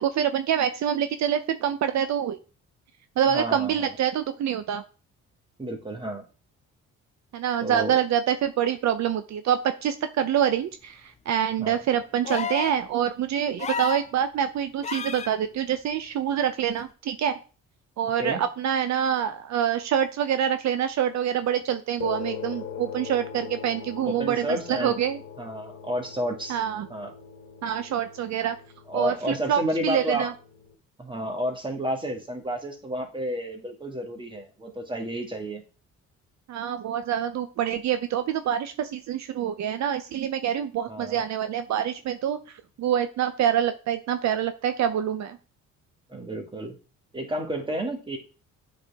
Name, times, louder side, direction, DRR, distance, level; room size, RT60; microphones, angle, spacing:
voice 1, 0.0-2.4 3.2-4.8 7.3-17.4 18.0-25.2 26.5-26.9 27.6-28.6 28.9-30.3 36.5-45.4, right 9 dB, 65° right, 10 dB, 0.6 m, -26 dB
voice 2, 3.3-3.9 5.6-6.2 7.6-8.0 11.6-11.8 18.2-18.4 24.1-25.0 25.4-26.6 26.9-27.1 28.9-30.3 31.0-35.6 40.9-41.2 46.1-46.7 47.1-48.2, equal, 15° right, 3 dB, 1.7 m, -31 dB
sound 1, 12.2-12.8 13.6-14.1 14.8-15.3 16.8-16.9, left 6 dB, 25° left, 0.3 m, -31 dB
sound 2, 22.0-30.7, left 7 dB, 75° left, 1.2 m, -41 dB
8.1 x 4.3 x 3.5 m, 0.35 s
cardioid pair, 90°, 30 cm